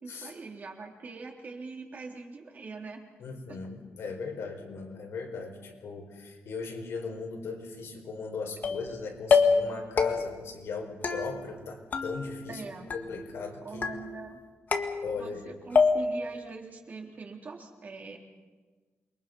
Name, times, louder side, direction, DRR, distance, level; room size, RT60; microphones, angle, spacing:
voice 1, 0.0-3.0 3.5-3.6 12.5-12.9 13.6-14.4 15.1-18.2, right 4 dB, 40° right, 1 dB, 3.5 m, -42 dB
voice 2, 3.2-14.0 15.0-15.5, left 4 dB, 70° left, 2 dB, 5.0 m, -38 dB
sound 1, 8.6-9.0 9.3-9.7 10.0-10.5 11.0-11.6 11.9-12.6 12.9-13.4 13.8-14.3 14.7-15.4 15.8-16.3, left 5 dB, 40° left, 1.9 m, -27 dB
29.0 x 23.5 x 5.5 m, 1.3 s
wide cardioid pair, 160°, 4 cm